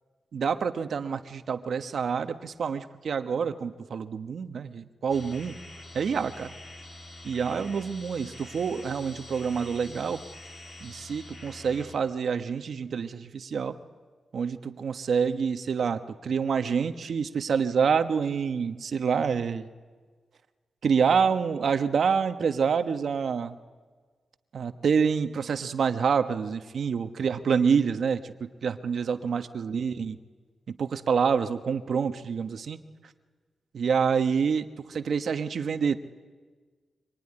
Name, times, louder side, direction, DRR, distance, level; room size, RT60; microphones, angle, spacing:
voice 1, 0.3-5.6 5.9-6.5 7.2-10.2 10.8-13.8 14.3-19.7 20.8-23.6 24.5-30.2 30.7-32.8 33.7-36.0, right 6 dB, 60° right, 9 dB, 1.1 m, -27 dB
sound 1, 5.1-12.0, left 1 dB, 35° left, 3.2 m, -45 dB
25.0 x 23.0 x 9.9 m, 1.5 s
wide cardioid pair, 140°, 0 cm